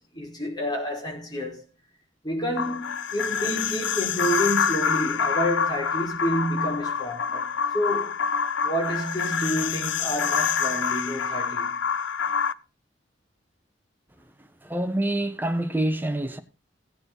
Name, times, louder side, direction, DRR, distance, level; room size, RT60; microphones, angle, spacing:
voice 1, 0.1-1.6 2.2-8.1 8.6-11.7, equal, 25° left, 5.2 m, -29 dB
sound 1, 2.6-12.5, left 6 dB, 70° left, 0.6 m, -27 dB
voice 2, 14.4-16.4, right 1 dB, 10° right, 1.2 m, -27 dB
16.0 x 9.0 x 4.0 m
head